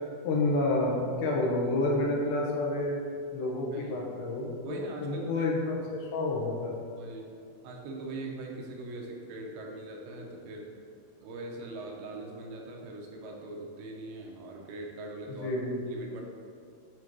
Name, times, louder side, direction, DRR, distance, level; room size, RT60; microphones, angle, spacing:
voice 1, 0.2-3.0 3.3-6.7 15.3-15.8, left 2 dB, 85° left, -3 dB, 3.2 m, -29 dB
voice 2, 4.6-5.5 7.0-7.4 7.6-10.7 11.2-15.5 15.9-16.2, right 2 dB, 80° right, -1 dB, 2.6 m, -41 dB
8.8 x 2.9 x 4.6 m, 2.4 s
omnidirectional pair, 4.6 m